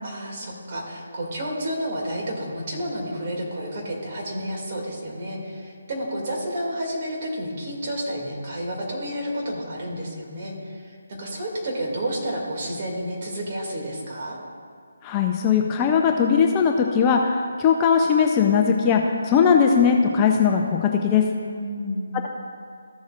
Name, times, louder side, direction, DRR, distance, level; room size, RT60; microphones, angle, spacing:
voice 1, 0.0-14.4 21.5-22.1, equal, 40° right, -2 dB, 2.3 m, -30 dB
voice 2, 15.0-21.2, left 6 dB, 20° left, 2 dB, 0.5 m, -19 dB
14.5 x 7.2 x 2.4 m, 2.2 s
figure-of-eight pair, 150°, 0 cm